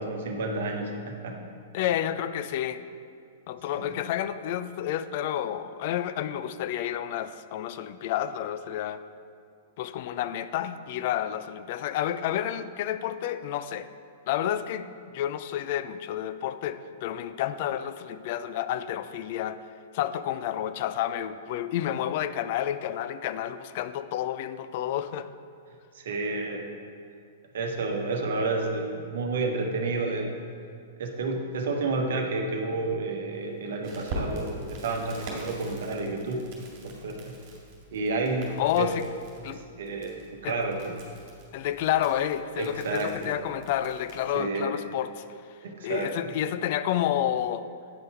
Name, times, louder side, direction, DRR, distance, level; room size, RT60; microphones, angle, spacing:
voice 1, 0.0-1.4 3.7-4.0 25.9-26.6 27.5-30.3 31.0-37.3 37.9-38.9 39.5-40.1 40.4-41.0 42.6-43.3 44.3-44.7 45.6-46.3, right 3 dB, 60° right, 3 dB, 1.0 m, -30 dB
voice 2, 1.7-2.8 3.5-9.0 9.8-13.9 14.3-14.9 15.1-19.6 19.9-25.3 38.6-39.0 39.4-39.6 40.4-40.6 41.5-45.1 45.8-47.7, left 11 dB, 50° left, 12 dB, 0.4 m, -30 dB
Crackle, 33.8-44.3, right 1 dB, 40° right, 2.1 m, -43 dB
8.7 x 5.4 x 4.6 m, 2.3 s
figure-of-eight pair, 105°, 0 cm